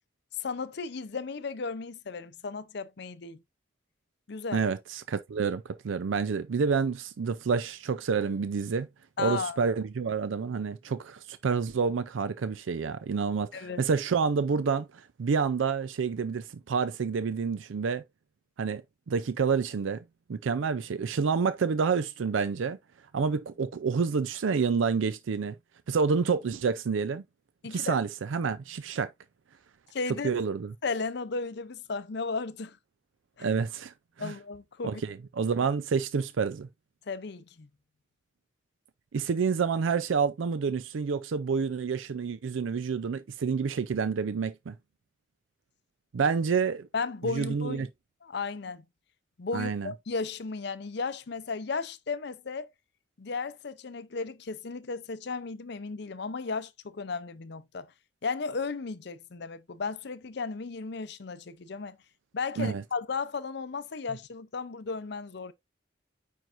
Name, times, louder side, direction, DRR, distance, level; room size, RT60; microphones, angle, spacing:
voice 1, 0.3-3.4 4.3-4.6 9.2-9.6 13.5-13.8 27.6-28.0 29.9-30.3 30.8-32.8 33.4-33.5 34.2-35.0 37.1-37.7 46.2-46.3 46.9-47.9 48.2-48.8 49.4-52.7 53.2-57.9 58.2-62.0 62.3-65.5, left 4 dB, 60° left, 0.6 m, -35 dB
voice 2, 4.5-8.9 9.2-18.0 18.6-18.8 19.1-20.0 20.3-22.8 23.1-25.6 25.9-27.2 27.7-29.1 30.2-30.7 33.4-33.9 34.2-34.3 34.8-36.7 39.1-44.7 46.1-46.9 47.2-47.9 49.5-49.9 62.6-62.8, right 5 dB, 85° right, 0.4 m, -28 dB
9.2 x 4.6 x 2.5 m
head